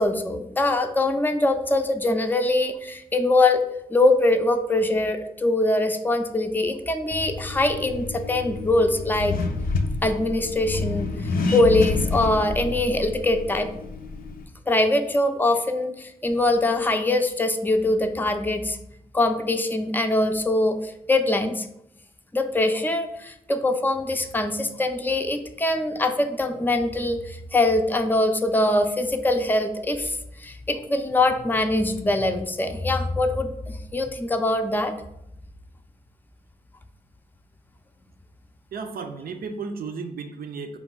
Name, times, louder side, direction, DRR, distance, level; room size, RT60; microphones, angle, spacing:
voice 1, 0.0-3.6 3.9-9.4 10.0-13.7 14.7-18.8 19.1-21.7 22.3-34.9, left 2 dB, 10° left, 6 dB, 0.5 m, -23 dB
Accelerating revving vroom, 7.1-14.4, left 3 dB, 65° left, 0.5 m, -29 dB
voice 2, 38.7-40.8, right 4 dB, 70° right, 7 dB, 0.5 m, -34 dB
4.5 x 2.3 x 3.8 m, 0.79 s
cardioid pair, 45°, 16 cm